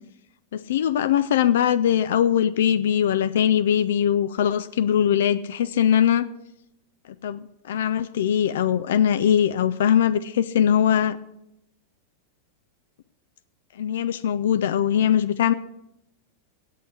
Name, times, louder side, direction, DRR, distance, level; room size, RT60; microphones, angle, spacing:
voice 1, 0.5-6.3 7.2-7.4 7.6-11.2 13.8-15.5, left 9 dB, 60° left, 13 dB, 0.4 m, -21 dB
8.3 x 8.3 x 7.6 m, 0.83 s
figure-of-eight pair, 90°, 0 cm